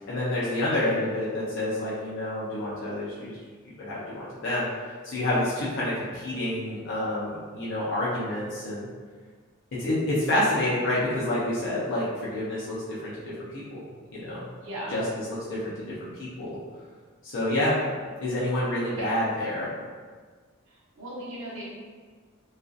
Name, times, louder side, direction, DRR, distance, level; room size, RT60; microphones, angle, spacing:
voice 1, 0.1-3.3 3.8-4.7 5.0-8.9 9.8-13.8 14.1-14.5 14.9-16.6 17.2-17.7 18.2-19.7, left 1 dB, 60° left, -8 dB, 0.5 m, -28 dB
voice 2, 14.6-15.0 19.0-19.1 21.0-21.6, right 1 dB, 75° right, -7 dB, 0.8 m, -36 dB
2.5 x 2.4 x 2.3 m, 1.5 s
head